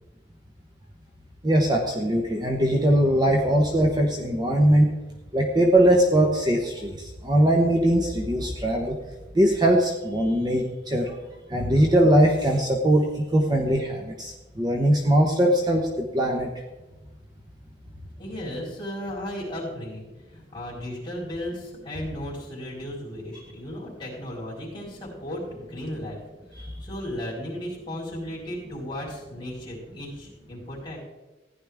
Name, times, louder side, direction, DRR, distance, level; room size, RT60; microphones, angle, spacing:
voice 1, 1.4-4.9 5.3-8.9 9.3-11.1 11.5-16.5, right 1 dB, 25° right, 1 dB, 1.0 m, -21 dB
voice 2, 18.2-20.0 20.3-26.2 26.5-31.0, equal, 25° left, -5 dB, 4.2 m, -35 dB
15.0 x 10.5 x 3.5 m, 1.1 s
head